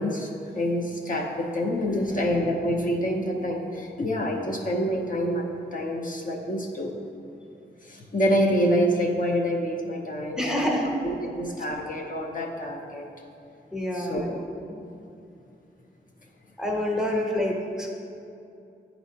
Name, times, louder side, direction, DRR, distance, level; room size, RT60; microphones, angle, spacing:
voice 1, 0.0-6.9 7.8-10.7 11.0-13.1 13.9-14.4, equal, 45° left, -1 dB, 0.6 m, -27 dB
voice 2, 1.8-2.3 10.4-10.9 13.7-14.3 14.6-14.8 16.6-17.9, left 1 dB, 5° right, -1 dB, 0.8 m, -28 dB
10.0 x 4.2 x 2.8 m, 2.6 s
wide cardioid pair, 95°, 19 cm